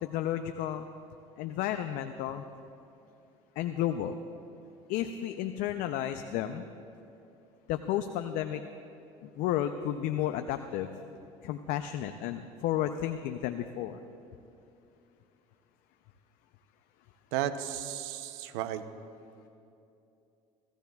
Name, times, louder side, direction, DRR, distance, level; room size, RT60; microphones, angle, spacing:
voice 1, 0.0-0.9 1.4-2.4 3.6-4.2 4.9-6.7 7.7-8.6 9.2-11.0 11.4-14.0, left 11 dB, 65° left, 8 dB, 0.5 m, -32 dB
voice 2, 17.3-18.8, right 11 dB, 75° right, 11 dB, 0.7 m, -34 dB
17.5 x 14.5 x 2.3 m, 2.7 s
supercardioid pair, 80°, 15 cm